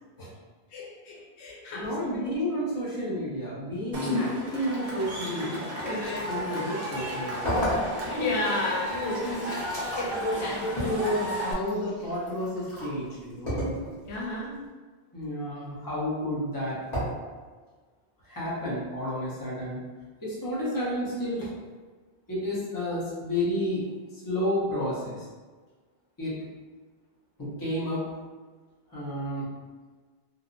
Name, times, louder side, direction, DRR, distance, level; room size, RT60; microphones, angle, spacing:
voice 1, 0.7-2.2 5.8-6.3 8.0-9.6 10.0-10.6 14.1-14.5, left 2 dB, 90° left, -4 dB, 1.0 m, -32 dB
voice 2, 1.7-6.0 6.3-7.7 9.2-9.4 10.1-13.6 15.1-16.8 18.2-19.8 20.2-21.5 22.3-23.9 24.1-25.3 26.2-26.4 27.4-28.0 28.9-29.5, equal, 20° left, -8 dB, 0.7 m, -31 dB
Cheering / Crowd, 3.9-11.5, equal, 45° right, 0.6 m, -33 dB
sound 1, 7.4-8.4 8.9-12.9 13.5-14.2 16.9-17.0, equal, 40° left, 1.1 m, -32 dB
2.8 x 2.1 x 2.5 m, 1.4 s
omnidirectional pair, 1.1 m